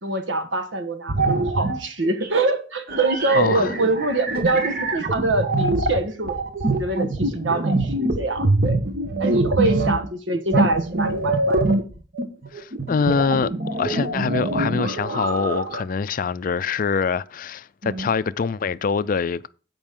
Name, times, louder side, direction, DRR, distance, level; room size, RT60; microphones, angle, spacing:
voice 1, 0.0-6.4 6.8-8.8 9.2-11.6 17.8-18.1, right 2 dB, 90° right, 1.5 m, -24 dB
sound 1, 1.1-1.8 2.2-2.5 2.9-10.1 10.5-15.8, right 2 dB, 55° right, 1.2 m, -24 dB
voice 2, 3.3-3.7 9.6-9.8 12.5-19.5, left 5 dB, 50° left, 0.4 m, -24 dB
16.0 x 5.4 x 3.7 m
head